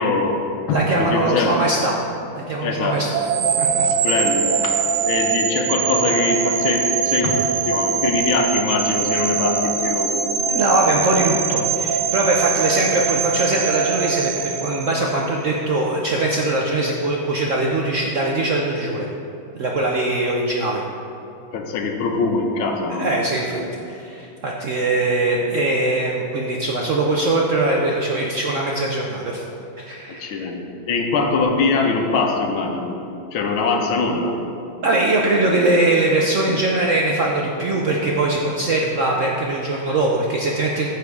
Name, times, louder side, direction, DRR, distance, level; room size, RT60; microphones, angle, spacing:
voice 1, 0.0-1.7 2.6-3.0 3.8-10.3 21.5-23.2 23.5-23.7 30.1-33.0 33.3-34.4, left 3 dB, 85° left, 3 dB, 1.8 m, -22 dB
voice 2, 0.7-2.0 2.4-3.1 3.4-3.9 10.5-19.1 19.5-20.8 22.9-23.6 23.9-29.4 29.8-30.4 34.8-40.9, right 2 dB, 65° right, -2 dB, 0.8 m, -21 dB
sound 1, 3.1-15.3, right 6 dB, 85° right, 1.5 m, -22 dB
14.0 x 4.7 x 4.7 m, 2.7 s
omnidirectional pair, 2.2 m